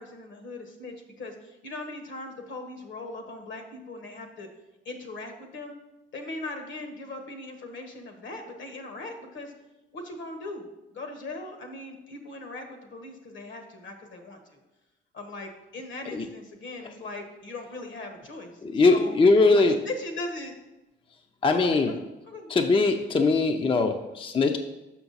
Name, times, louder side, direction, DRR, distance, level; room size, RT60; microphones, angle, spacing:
voice 1, 0.0-4.5 4.8-5.7 6.1-9.5 9.9-14.6 15.1-18.6 18.9-19.1 19.4-20.5 21.5-22.0 22.2-22.5, left 2 dB, 70° left, 5 dB, 1.3 m, -39 dB
voice 2, 18.6-19.8 21.4-21.9 22.5-24.6, left 3 dB, 25° left, 6 dB, 0.5 m, -21 dB
6.1 x 5.9 x 4.0 m, 1.0 s
cardioid pair, 90°, 20 cm